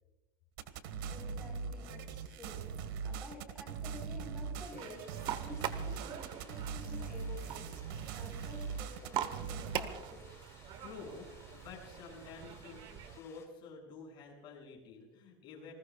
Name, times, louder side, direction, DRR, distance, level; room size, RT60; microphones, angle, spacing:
sound 1, 0.6-9.8, right 6 dB, 75° right, 1.7 m, -41 dB
voice 1, 1.1-7.8 8.1-10.3, left 1 dB, 5° right, 0 dB, 4.3 m, -51 dB
sound 2, 4.5-13.5, left 6 dB, 25° left, 3.4 m, -61 dB
sound 3, 4.7-13.2, right 10 dB, 45° right, 1.2 m, -43 dB
voice 2, 10.8-15.7, left 4 dB, 45° left, 0 dB, 7.1 m, -50 dB
28.5 x 20.0 x 2.4 m, 1.0 s
supercardioid pair, 135°, 12 cm